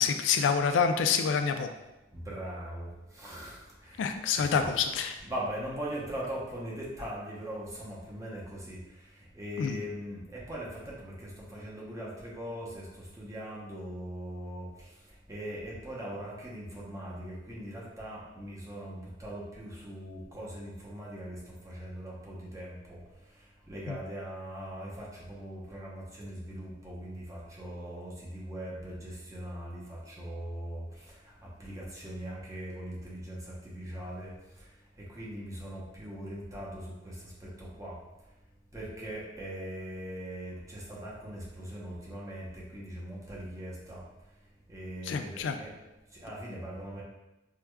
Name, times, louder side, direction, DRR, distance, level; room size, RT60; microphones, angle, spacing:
voice 1, 0.0-1.7 4.0-5.2 9.6-9.8 23.9-24.0 45.1-45.6, left 6 dB, 90° left, 7 dB, 0.3 m, -27 dB
voice 2, 2.1-4.1 4.3-4.9 5.2-8.8 9.3-14.7 15.3-23.0 23.7-31.1 31.6-34.3 35.1-37.9 38.7-44.0 44.7-45.7 46.1-47.0, equal, 20° right, -5 dB, 0.7 m, -40 dB
4.6 x 2.2 x 2.2 m, 1.0 s
head